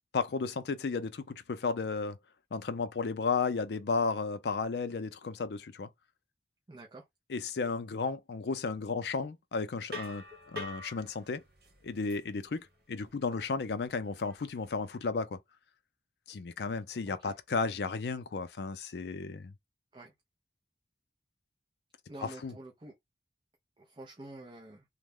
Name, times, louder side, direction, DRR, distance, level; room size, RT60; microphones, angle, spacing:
voice 1, 0.1-2.2 2.5-5.9 7.3-10.2 10.5-11.4 11.8-15.4 16.3-19.5 22.2-22.5, left 4 dB, 70° left, 0.4 m, -33 dB
voice 2, 6.7-7.0 17.1-17.3 19.9-20.1 22.1-22.9 23.8-24.8, right 2 dB, 30° right, 0.5 m, -48 dB
sound 1, 9.9-15.0, left 1 dB, 60° right, 1.3 m, -47 dB
3.1 x 2.1 x 3.5 m
head